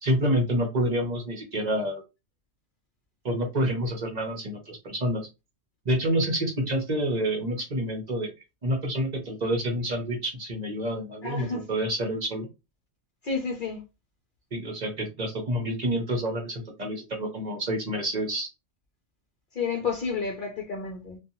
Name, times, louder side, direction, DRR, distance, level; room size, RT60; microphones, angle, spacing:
voice 1, 0.0-2.0 3.2-5.3 5.8-8.3 8.6-12.5 14.5-18.5, right 1 dB, 40° right, 0.7 m, -28 dB
voice 2, 11.2-11.6 13.2-13.8 19.5-21.2, left 5 dB, 50° left, 0.7 m, -30 dB
2.7 x 2.3 x 2.7 m
omnidirectional pair, 1.3 m